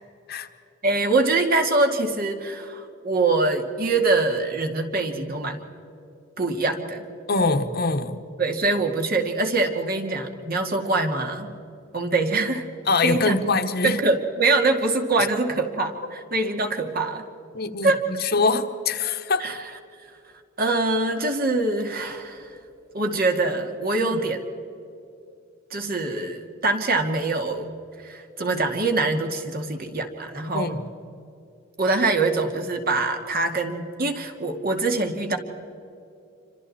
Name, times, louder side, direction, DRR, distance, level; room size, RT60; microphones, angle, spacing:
voice 1, 0.8-5.6 6.4-7.0 8.4-11.5 11.9-12.6 13.0-13.4 13.8-17.2 17.8-18.0 19.4-19.6 20.6-22.6 22.9-24.4 25.7-27.7 28.0-30.8 31.8-35.4, right 3 dB, 50° right, 4 dB, 2.3 m, -24 dB
voice 2, 7.3-8.2 12.9-14.0 17.5-19.4 24.0-24.2 30.5-30.8, left 3 dB, 55° left, 7 dB, 1.3 m, -24 dB
28.0 x 25.5 x 4.3 m, 2.7 s
head